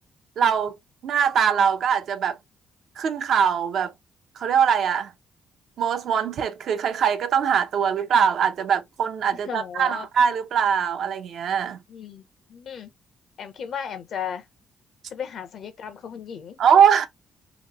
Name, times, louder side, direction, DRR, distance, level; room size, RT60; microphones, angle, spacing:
voice 1, 0.4-0.8 1.0-2.4 3.0-3.9 4.4-5.1 5.8-11.8 16.6-17.1, right 7 dB, 70° right, 0.6 m, -22 dB
voice 2, 9.3-10.1 11.9-12.2 12.5-12.9 13.4-14.5 15.1-16.6, left 8 dB, 65° left, 0.7 m, -35 dB
3.0 x 2.1 x 2.9 m
cardioid pair, 90°, 0 cm